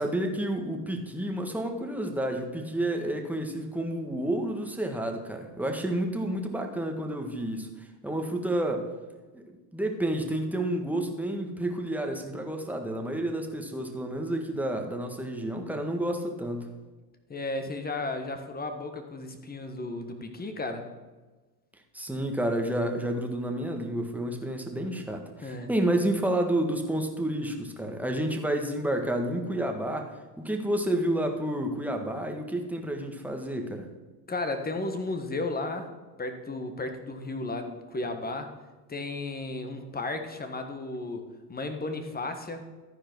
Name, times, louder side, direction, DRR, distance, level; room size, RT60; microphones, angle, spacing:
voice 1, 0.0-8.9 9.3-16.7 21.9-30.1 30.4-33.9, right 1 dB, 5° right, 3 dB, 1.6 m, -30 dB
voice 2, 17.3-20.9 25.4-25.7 34.3-35.9 36.2-38.5 38.9-42.6, left 2 dB, 20° left, 7 dB, 1.5 m, -34 dB
13.5 x 4.8 x 6.1 m, 1.2 s
hypercardioid pair, 90°, 49 cm